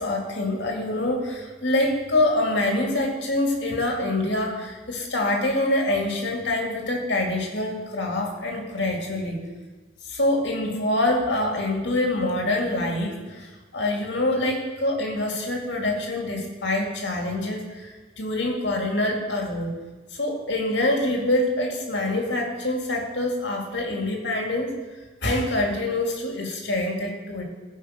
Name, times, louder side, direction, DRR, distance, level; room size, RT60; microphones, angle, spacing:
voice 1, 0.0-9.4 10.0-19.7 20.1-24.7 25.2-27.4, left 1 dB, 65° left, 0 dB, 2.2 m, -25 dB
15.0 x 5.5 x 5.2 m, 1.2 s
head